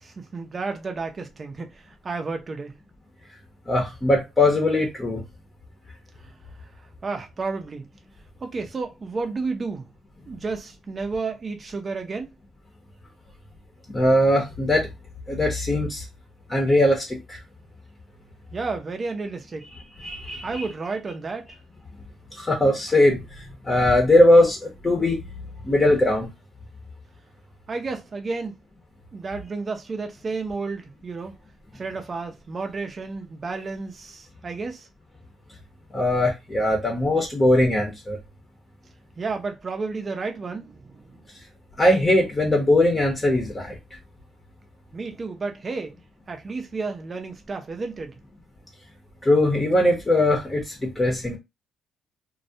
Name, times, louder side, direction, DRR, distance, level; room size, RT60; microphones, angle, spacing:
voice 1, 0.0-2.7 6.2-6.3 7.0-7.9 8.4-9.9 10.3-12.3 18.5-19.7 20.4-21.5 27.7-28.6 29.1-31.3 31.7-34.9 39.2-41.2 44.9-46.0 46.3-48.2, right 4 dB, 35° right, 0.5 m, -31 dB
voice 2, 3.7-5.2 13.9-14.9 15.3-16.0 16.5-17.4 20.0-20.6 22.4-23.2 23.6-25.2 25.6-26.3 35.9-38.2 41.8-43.8 49.2-51.4, left 1 dB, 25° left, 0.7 m, -20 dB
2.2 x 2.1 x 2.7 m
cardioid pair, 90°, 0 cm